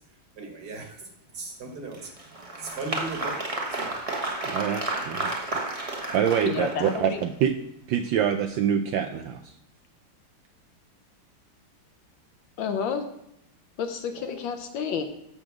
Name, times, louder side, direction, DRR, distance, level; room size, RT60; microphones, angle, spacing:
voice 1, 0.4-1.1 1.3-2.1 2.6-3.4 3.7-3.9 14.1-14.4, right 3 dB, 50° right, 3 dB, 1.9 m, -37 dB
Applause, 1.9-7.2, right 2 dB, 25° right, 0.8 m, -32 dB
voice 2, 4.5-5.3 6.1-7.5 7.9-9.5, right 8 dB, 75° right, 7 dB, 1.1 m, -25 dB
voice 3, 6.5-7.2 12.6-13.0 13.8-15.1, left 6 dB, 70° left, 7 dB, 1.3 m, -30 dB
7.2 x 6.7 x 6.1 m, 0.79 s
omnidirectional pair, 2.4 m